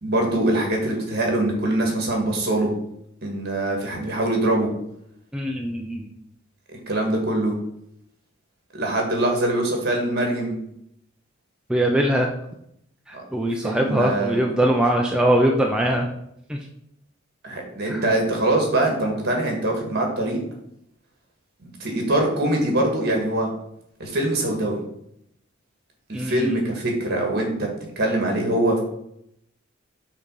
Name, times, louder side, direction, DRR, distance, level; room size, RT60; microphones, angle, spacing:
voice 1, 0.0-2.7 3.2-4.7 6.9-7.5 8.7-10.6 13.1-13.2 13.6-14.5 17.4-20.4 21.8-23.5 24.0-24.8 26.2-27.7 27.9-28.8, right 1 dB, 50° right, 1 dB, 1.7 m, -23 dB
voice 2, 5.3-6.1 11.7-12.3 13.1-16.1 16.5-16.6 17.9-18.0 26.1-26.7, right 1 dB, 5° right, 0 dB, 0.5 m, -22 dB
5.7 x 3.9 x 5.4 m, 0.76 s
head